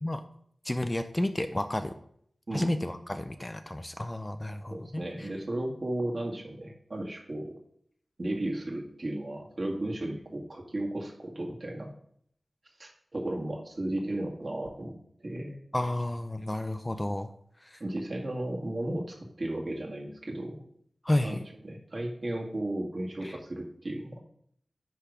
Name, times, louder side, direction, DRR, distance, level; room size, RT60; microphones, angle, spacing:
voice 1, 0.6-1.9 2.5-5.3 15.7-17.3 17.6-17.8 21.0-21.4 23.2-23.4, left 1 dB, 20° left, 8 dB, 0.6 m, -31 dB
voice 2, 4.7-7.6 8.2-11.9 12.8-15.0 15.2-15.6 17.8-20.6 21.2-24.2, right 1 dB, 50° right, 0 dB, 1.9 m, -34 dB
10.0 x 3.5 x 5.0 m, 0.66 s
wide cardioid pair, 65°, 0 cm